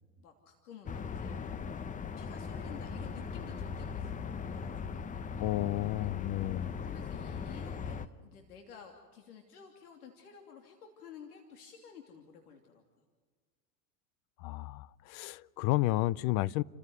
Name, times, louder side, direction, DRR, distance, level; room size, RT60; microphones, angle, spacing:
voice 1, 0.2-1.4 2.1-4.2 4.5-5.4 6.8-12.8, left 7 dB, 90° left, 3.0 m, -52 dB
sound 1, 0.9-8.1, left 6 dB, 20° left, 0.8 m, -39 dB
voice 2, 5.4-6.7 14.4-16.6, left 18 dB, 45° left, 0.6 m, -31 dB
30.0 x 15.5 x 9.4 m
supercardioid pair, 120°, 44 cm